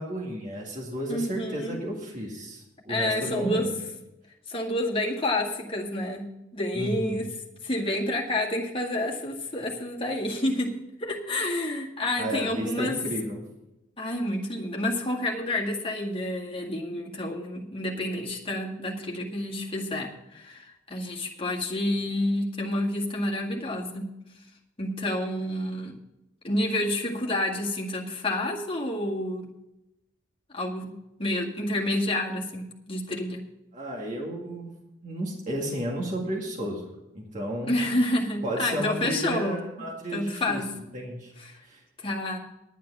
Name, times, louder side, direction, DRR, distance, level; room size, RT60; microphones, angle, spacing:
voice 1, 0.0-3.7 6.7-7.3 12.2-13.4 33.7-34.8 35.0-36.9 37.1-37.8 38.4-40.6 40.9-41.3 41.6-41.8, right 1 dB, 40° right, -2 dB, 2.1 m, -32 dB
voice 2, 1.1-1.8 2.9-3.7 4.5-7.3 7.6-10.7 11.0-13.0 14.0-24.1 24.8-25.9 26.4-29.4 30.5-33.4 37.6-39.6 40.1-40.7 41.4-41.6 42.0-42.4, left 1 dB, 25° left, -3 dB, 1.9 m, -29 dB
10.5 x 9.3 x 6.0 m, 0.93 s
head